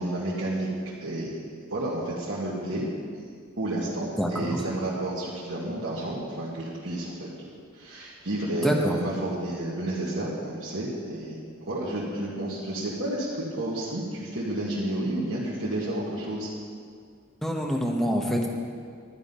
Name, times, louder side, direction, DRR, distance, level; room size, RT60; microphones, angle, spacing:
voice 1, 0.0-1.3 1.6-2.9 3.6-16.5, right 1 dB, 65° right, -8 dB, 1.8 m, -31 dB
voice 2, 4.2-4.6 8.6-9.0 17.4-18.5, equal, ahead, 0 dB, 1.1 m, -26 dB
11.5 x 9.6 x 5.5 m, 2.1 s
head